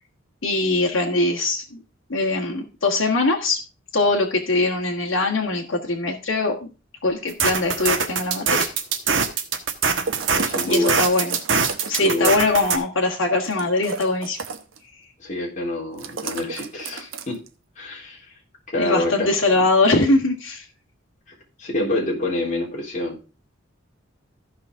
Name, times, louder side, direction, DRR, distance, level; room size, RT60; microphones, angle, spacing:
voice 1, 0.4-1.8 2.1-3.6 3.9-6.7 7.0-8.7 10.6-11.3 11.9-14.4 18.8-20.6, left 2 dB, 80° left, -2 dB, 1.6 m, -21 dB
sound 1, 7.3-12.8, right 6 dB, 70° right, 1.4 m, -22 dB
sound 2, 10.1-12.3 13.4-14.8 16.0-17.5, right 4 dB, 85° right, 1.0 m, -32 dB
voice 2, 10.3-11.0 12.0-12.4 15.2-17.4 17.8-18.3 18.7-19.3 19.5-19.6 21.6-23.2, left 2 dB, 40° left, -3 dB, 3.7 m, -26 dB
14.5 x 5.7 x 3.6 m, 0.33 s
head